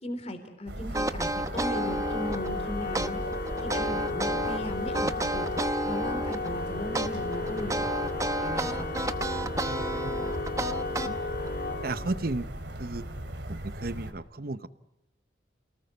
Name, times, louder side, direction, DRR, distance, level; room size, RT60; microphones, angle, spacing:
voice 1, 0.0-3.2 3.6-5.5 5.8-8.1 8.4-9.0, left 1 dB, 35° left, 8 dB, 3.5 m, -37 dB
sound 1, 0.7-14.1, right 1 dB, 70° right, 2.7 m, -38 dB
sound 2, 0.9-2.5 2.9-4.6 4.9-6.5 6.9-11.5, right 1 dB, 15° right, 0.8 m, -31 dB
Organ, 1.5-12.5, left 3 dB, 55° left, 2.5 m, -34 dB
voice 2, 9.4-10.4 11.0-11.2 11.8-12.5 12.8-13.0 13.5-14.7, right 2 dB, 50° right, 14 dB, 0.9 m, -35 dB
28.5 x 18.5 x 8.2 m, 0.92 s
head